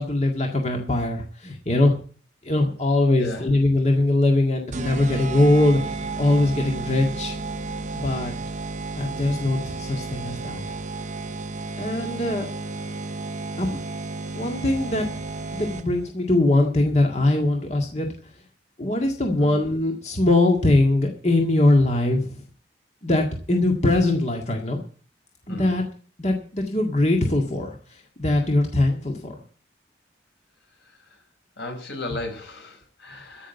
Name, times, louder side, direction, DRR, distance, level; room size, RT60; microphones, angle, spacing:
voice 1, 0.0-2.0 2.4-7.4 7.9-8.3 8.9-10.6 11.8-12.5 13.6-13.8 14.4-15.1 15.5-18.1 18.8-22.5 23.0-24.8 25.5-25.8 26.2-27.8 28.2-29.3, left 2 dB, 40° left, 2 dB, 1.9 m, -21 dB
voice 2, 3.2-3.5 19.4-19.6 25.5-25.7 30.8-31.2 31.6-33.5, left 2 dB, 85° left, 3 dB, 5.3 m, -35 dB
sound 1, 4.7-16.1, right 3 dB, 45° right, 0.9 m, -32 dB
14.0 x 6.3 x 9.0 m, 0.41 s
head